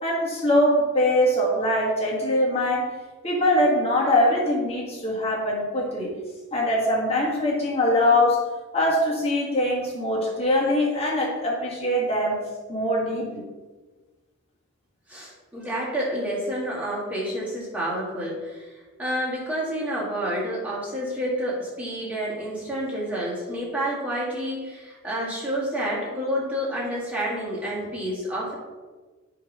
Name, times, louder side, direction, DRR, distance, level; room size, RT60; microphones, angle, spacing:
voice 1, 0.0-2.8 3.2-6.1 6.5-8.4 8.7-12.4 12.7-13.4, left 1 dB, 30° left, -3 dB, 1.6 m, -22 dB
voice 2, 15.1-28.5, equal, 5° right, -7 dB, 1.9 m, -29 dB
8.3 x 3.1 x 5.3 m, 1.3 s
head